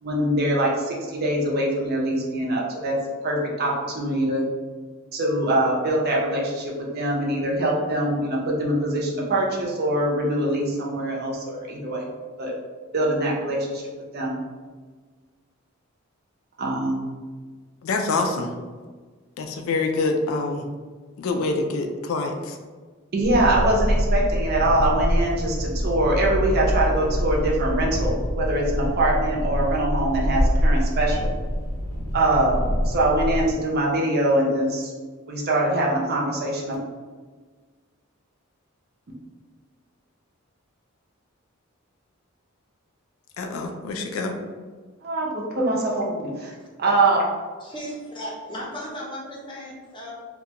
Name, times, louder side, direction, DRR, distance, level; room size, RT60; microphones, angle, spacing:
voice 1, 0.0-3.0 3.2-4.4 5.1-12.1 12.4-12.5 12.9-14.4 16.6-17.1 23.1-31.3 32.1-34.9 35.3-36.8 45.0-46.5 46.8-47.2, right 1 dB, 50° right, -2 dB, 0.5 m, -23 dB
voice 2, 17.8-18.5 19.4-20.7 21.2-22.6 43.4-44.4, left 3 dB, 75° left, 4 dB, 0.3 m, -26 dB
sound 1, 23.2-33.5, equal, 90° right, 0.8 m, -25 dB
voice 3, 47.6-50.1, equal, 25° left, -4 dB, 0.6 m, -36 dB
2.4 x 2.2 x 2.8 m, 1.4 s
head